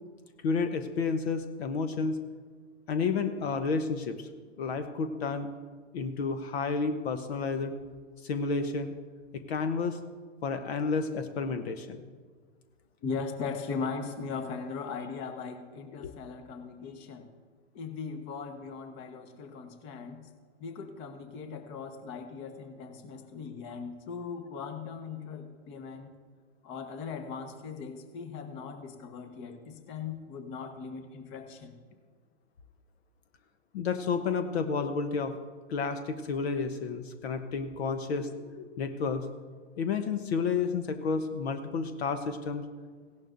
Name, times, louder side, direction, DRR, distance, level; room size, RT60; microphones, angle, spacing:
voice 1, 0.4-2.2 2.9-4.3 4.6-5.5 5.9-7.7 8.2-8.9 9.3-10.0 10.4-12.0 16.0-16.1 33.7-35.3 35.7-39.3 39.8-42.6, left 4 dB, 60° left, 8 dB, 1.0 m, -31 dB
voice 2, 13.0-17.3 17.7-20.3 20.6-26.1 26.6-31.7, left 5 dB, 30° left, 7 dB, 1.3 m, -39 dB
17.0 x 11.5 x 2.6 m, 1.5 s
hypercardioid pair, 120°, 37 cm